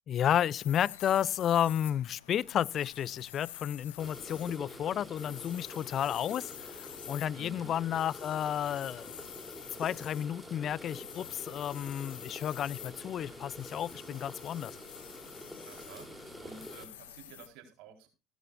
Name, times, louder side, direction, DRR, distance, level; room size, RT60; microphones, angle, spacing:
voice 1, 0.1-9.1 9.8-14.8, left 10 dB, 50° left, 0.5 m, -32 dB
sound 1, 0.5-17.5, left 13 dB, 85° left, 1.1 m, -49 dB
sound 2, 4.0-16.9, equal, ahead, 3.5 m, -47 dB
voice 2, 7.3-7.7 15.7-18.1, right 5 dB, 70° right, 4.2 m, -51 dB
16.0 x 12.5 x 2.6 m
hypercardioid pair, 70°, 0 cm